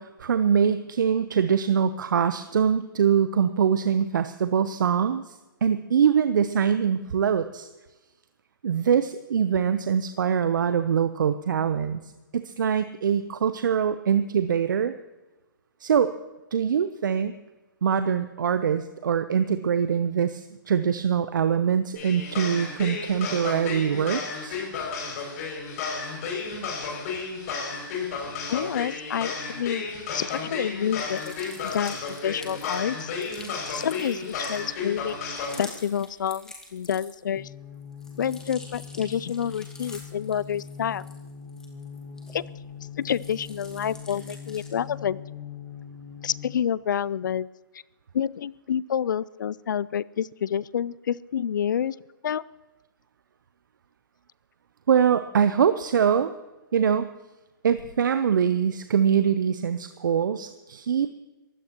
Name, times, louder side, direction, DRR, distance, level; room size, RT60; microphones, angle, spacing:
voice 1, 0.0-5.3 5.6-7.7 8.6-12.0 12.3-14.9 15.8-16.1 16.5-17.4 17.8-24.6 54.9-56.3 56.7-57.1 57.6-61.1, right 7 dB, 65° right, 11 dB, 0.8 m, -23 dB
sound 1, 22.0-35.6, left 5 dB, 45° left, 6.8 m, -33 dB
voice 2, 28.5-29.9 30.1-31.3 31.6-33.1 33.7-37.5 38.2-41.1 42.3-42.4 43.0-45.2 46.2-47.5 48.1-52.0 52.2-52.4, left 8 dB, 65° left, 21 dB, 0.5 m, -28 dB
sound 2, 30.9-37.4 37.7-42.6 43.0-44.9, left 2 dB, 5° left, 2.5 m, -47 dB
sound 3, 37.4-46.7, left 7 dB, 25° left, 1.3 m, -42 dB
23.0 x 16.0 x 3.0 m, 1.1 s
hypercardioid pair, 130°, 11 cm